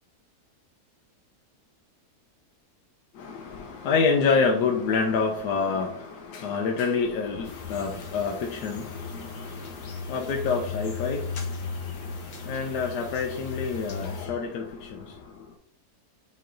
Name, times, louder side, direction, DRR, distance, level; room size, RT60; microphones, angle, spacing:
voice 1, 3.1-15.6, left 5 dB, 85° left, 1.3 m, -28 dB
sound 1, 7.4-14.3, left 4 dB, 65° left, 1.6 m, -36 dB
7.7 x 3.2 x 3.8 m
omnidirectional pair, 1.7 m